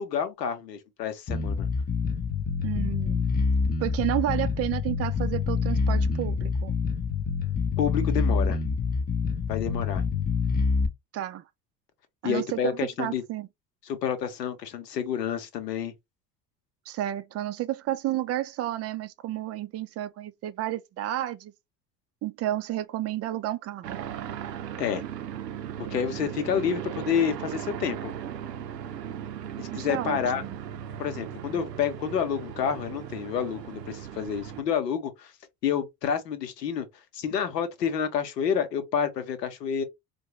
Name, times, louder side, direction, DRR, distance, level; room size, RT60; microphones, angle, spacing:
voice 1, 0.0-1.7 7.8-8.6 9.5-10.0 12.2-13.2 13.8-15.9 24.8-25.0 25.9-28.1 29.6-30.4 31.0-35.3 35.6-36.9 37.1-39.8, left 8 dB, 75° left, 0.9 m, -29 dB
Bass guitar, 1.3-10.9, left 5 dB, 20° left, 0.6 m, -26 dB
voice 2, 2.6-3.2 3.8-6.7 11.1-11.4 12.2-12.6 13.0-13.5 16.9-21.5 22.2-24.0 29.7-30.6, right 14 dB, 30° right, 0.4 m, -31 dB
sound 1, 23.8-34.6, right 9 dB, 80° right, 0.6 m, -37 dB
4.5 x 2.3 x 2.9 m
figure-of-eight pair, 60°, 49 cm